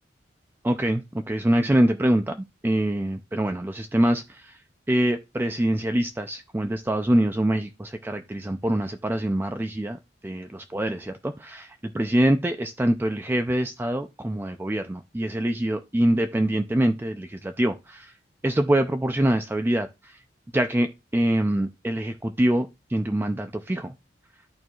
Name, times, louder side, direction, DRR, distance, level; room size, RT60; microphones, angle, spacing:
voice 1, 0.6-4.6 4.9-18.1 18.4-20.2 20.5-23.9, right 1 dB, 10° right, 0.4 m, -25 dB
13.0 x 4.5 x 2.3 m
head